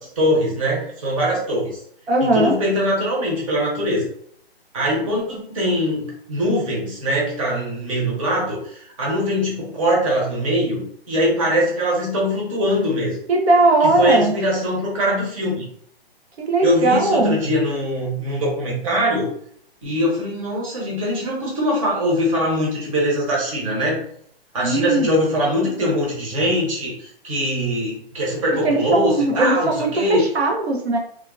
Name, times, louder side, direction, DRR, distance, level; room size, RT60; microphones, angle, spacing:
voice 1, 0.2-1.7 2.2-4.1 4.7-6.0 6.3-13.2 13.8-15.6 16.6-19.3 19.8-24.0 24.5-30.2, equal, 35° right, -4 dB, 1.1 m, -22 dB
voice 2, 2.1-2.6 13.3-14.3 16.4-17.4 24.6-25.1 28.6-31.0, right 2 dB, 90° right, 1 dB, 0.8 m, -19 dB
3.6 x 2.3 x 2.4 m, 0.66 s
hypercardioid pair, 170°, 31 cm